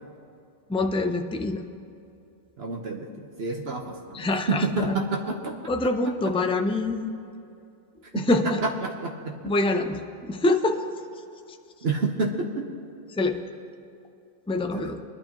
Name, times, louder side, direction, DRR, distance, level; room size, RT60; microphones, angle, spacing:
voice 1, 0.7-1.6 4.1-5.0 5.7-7.2 8.1-8.6 9.4-10.8 13.2-13.4 14.5-15.0, left 2 dB, 10° left, 6 dB, 0.3 m, -25 dB
voice 2, 2.6-3.1 3.4-5.5 8.1-9.3 11.8-12.7 14.7-14.9, right 3 dB, 65° right, 2 dB, 1.1 m, -29 dB
22.0 x 11.5 x 2.9 m, 2.6 s
omnidirectional pair, 1.2 m